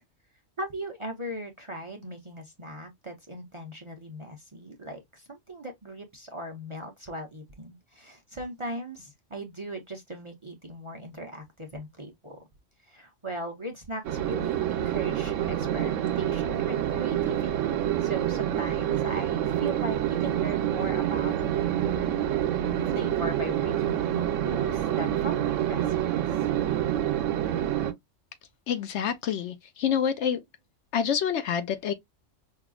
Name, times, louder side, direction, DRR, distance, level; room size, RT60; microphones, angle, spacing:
voice 1, 0.6-12.4 12.8-21.4 21.7-22.0 22.8-26.0 26.3-26.4, right 1 dB, 30° right, 0.6 m, -38 dB
sound 1, 14.0-27.9, right 11 dB, 85° right, 1.0 m, -27 dB
voice 2, 28.7-30.4 30.9-31.9, left 8 dB, 70° left, 0.9 m, -27 dB
5.4 x 2.4 x 2.3 m
omnidirectional pair, 1.3 m